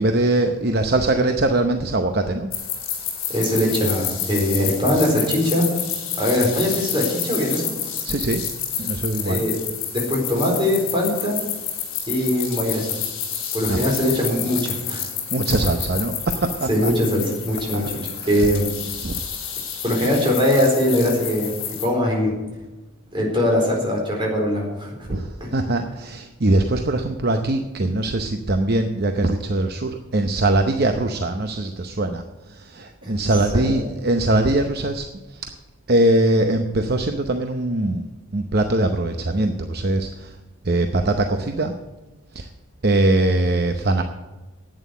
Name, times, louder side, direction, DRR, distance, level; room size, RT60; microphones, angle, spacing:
voice 1, 0.0-2.5 8.0-8.4 8.8-9.5 13.7-13.8 15.3-16.9 17.7-17.9 18.2-18.5 19.0-19.2 25.1-35.5 35.9-38.0 38.3-40.4 40.6-41.7 42.3-42.5 42.8-44.0, right 2 dB, 45° right, 6 dB, 0.7 m, -22 dB
sound 1, 2.5-21.8, left 8 dB, 60° left, 3.4 m, -29 dB
voice 2, 3.3-5.7 6.2-7.7 9.2-9.6 9.9-11.4 12.1-12.9 13.5-15.0 16.7-18.0 18.3-18.7 19.8-21.5 21.8-22.3 23.1-25.1 25.4-25.5 33.0-33.2 33.5-33.7, left 1 dB, 20° right, -2 dB, 4.1 m, -21 dB
11.0 x 8.9 x 8.2 m, 1.1 s
head